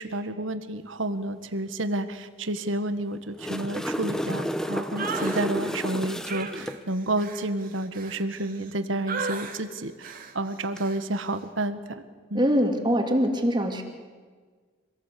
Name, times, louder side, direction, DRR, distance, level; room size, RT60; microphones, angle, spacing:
voice 1, 0.0-12.0 12.3-12.5, right 1 dB, 85° right, 10 dB, 1.5 m, -30 dB
sound 1, 3.2-6.8 10.6-10.8, equal, 5° left, 0.9 m, -31 dB
sound 2, 5.0-5.4 6.3-8.7 9.1-9.6 10.0-10.3 10.8-11.0, right 5 dB, 45° right, 2.2 m, -35 dB
voice 2, 12.3-13.8, equal, 25° right, 3 dB, 2.6 m, -23 dB
26.0 x 18.5 x 8.4 m, 1.5 s
head